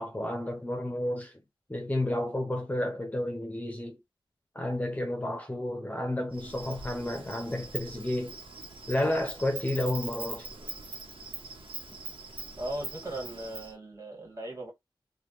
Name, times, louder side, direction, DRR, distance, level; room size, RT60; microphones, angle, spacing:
voice 1, 0.0-1.3 1.7-4.0 4.5-8.4 8.9-10.5, left 1 dB, 15° left, 0.7 m, -31 dB
Insect, 6.3-13.7, right 3 dB, 85° right, 1.0 m, -42 dB
voice 2, 12.6-14.7, right 1 dB, 40° right, 2.2 m, -38 dB
3.1 x 2.3 x 2.9 m
wide cardioid pair, 85°, 9 cm